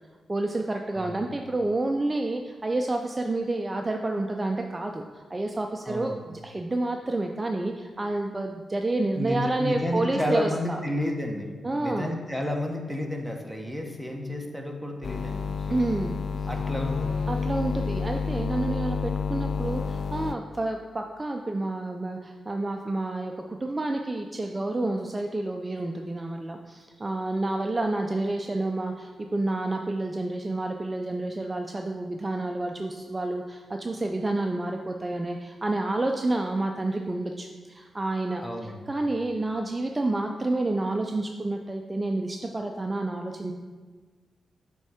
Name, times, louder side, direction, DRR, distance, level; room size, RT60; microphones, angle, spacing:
voice 1, 0.3-10.8 11.6-12.2 15.7-16.2 17.3-38.4 38.9-43.5, right 2 dB, 20° right, 3 dB, 0.4 m, -29 dB
voice 2, 0.9-1.3 5.8-6.3 9.1-15.7 16.5-17.3 38.4-38.9, left 1 dB, 5° left, 2 dB, 0.9 m, -31 dB
sound 1, 15.0-20.3, left 5 dB, 60° left, 0.3 m, -29 dB
8.5 x 3.6 x 4.8 m, 1.4 s
wide cardioid pair, 120°, 0 cm